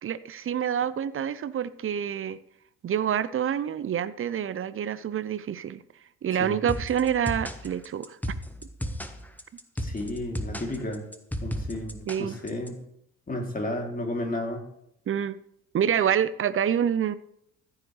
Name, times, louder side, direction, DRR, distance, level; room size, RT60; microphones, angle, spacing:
voice 1, 0.0-2.4 2.8-5.8 6.2-8.2 12.1-12.4 15.1-15.4 15.7-17.1, right 9 dB, 35° right, 0.7 m, -27 dB
sound 1, 6.7-12.7, equal, 5° left, 1.3 m, -34 dB
voice 2, 9.8-11.1 11.4-12.8 13.3-14.6, left 1 dB, 25° left, 3.0 m, -32 dB
14.5 x 9.8 x 3.3 m
hypercardioid pair, 50°, 36 cm